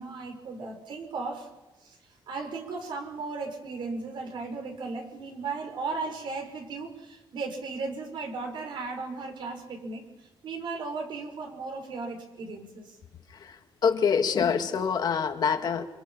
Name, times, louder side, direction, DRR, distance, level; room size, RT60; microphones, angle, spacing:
voice 1, 0.0-1.5 1.8-2.0 2.3-10.0 10.4-13.0, right 4 dB, 60° right, 3 dB, 5.7 m, -36 dB
voice 2, 13.8-15.8, left 6 dB, 50° left, 6 dB, 1.9 m, -25 dB
29.0 x 26.0 x 5.7 m, 1.1 s
cardioid pair, 150°, 9 cm